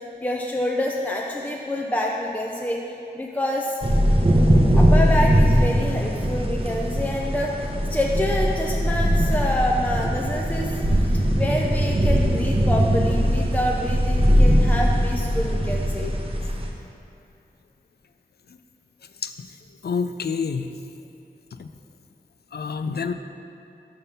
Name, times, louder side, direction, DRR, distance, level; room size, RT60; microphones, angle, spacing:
voice 1, 0.0-2.8 3.1-3.8 4.7-10.7 11.0-16.1, left 1 dB, 10° left, -1 dB, 0.5 m, -27 dB
sound 1, 3.8-16.7, equal, 30° right, 0.8 m, -20 dB
voice 2, 19.8-20.7 21.6-21.7 22.5-23.1, left 5 dB, 70° left, 9 dB, 0.4 m, -27 dB
5.7 x 5.2 x 5.6 m, 2.6 s
wide cardioid pair, 45°, 17 cm